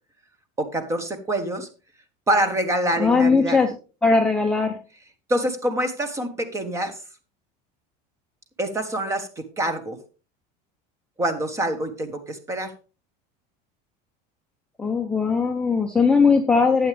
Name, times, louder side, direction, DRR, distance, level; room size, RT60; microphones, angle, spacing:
voice 1, 0.6-1.7 2.3-3.6 5.3-7.0 8.6-10.0 11.2-12.7, right 1 dB, 15° right, 11 dB, 1.2 m, -25 dB
voice 2, 3.0-3.7 4.0-4.8 14.8-16.9, left 4 dB, 5° left, 2 dB, 0.7 m, -19 dB
11.5 x 8.8 x 3.4 m, 0.34 s
cardioid pair, 165°, 21 cm